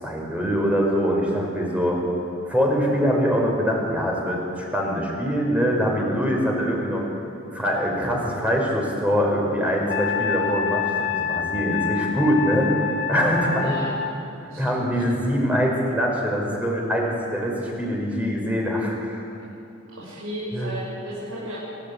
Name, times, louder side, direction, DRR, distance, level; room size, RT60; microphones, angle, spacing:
voice 1, 0.0-2.0 2.5-7.1 7.5-12.8 13.1-13.7 14.4-19.2 20.5-20.7, equal, 5° right, -1 dB, 5.0 m, -23 dB
Wind instrument woodwind instrument, 9.9-14.2, left 7 dB, 55° left, 1.3 m, -27 dB
voice 2, 13.6-13.9 14.5-14.7 20.0-21.6, equal, 80° right, -7 dB, 6.7 m, -33 dB
28.0 x 14.0 x 8.6 m, 2.8 s
head